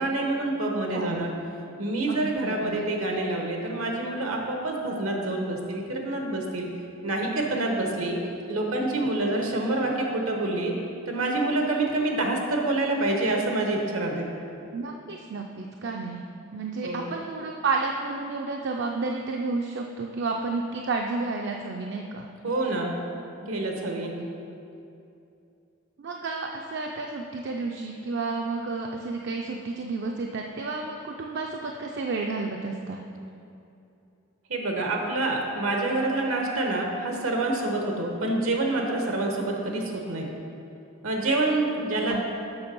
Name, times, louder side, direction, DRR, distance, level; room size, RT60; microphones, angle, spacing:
voice 1, 0.0-1.3 1.8-6.7 7.0-8.2 8.5-10.7 11.1-14.3 16.8-17.1 22.4-23.0 23.4-24.1 34.5-40.3 41.0-42.2, right 2 dB, 80° right, 1 dB, 1.0 m, -27 dB
voice 2, 0.9-1.3 2.1-2.9 14.7-16.2 16.5-22.3 26.0-33.0 42.1-42.2, right 3 dB, 55° right, 2 dB, 0.4 m, -31 dB
7.0 x 6.0 x 5.3 m, 2.7 s
head